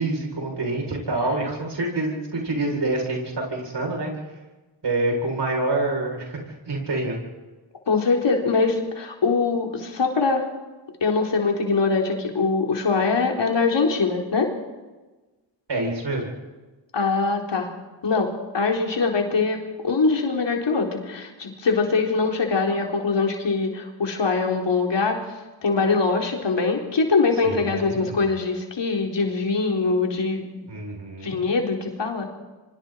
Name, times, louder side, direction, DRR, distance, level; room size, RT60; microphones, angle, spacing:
voice 1, 0.0-4.1 4.8-6.4 6.7-7.2 15.7-16.3 27.4-28.2 30.7-31.4, right 2 dB, 60° right, 1 dB, 8.0 m, -26 dB
voice 2, 7.9-10.4 11.0-14.5 16.9-17.7 18.0-25.2 25.6-30.7 31.2-32.3, left 4 dB, 65° left, 1 dB, 3.9 m, -23 dB
26.5 x 24.0 x 4.6 m, 1.2 s
cardioid pair, 50°, 46 cm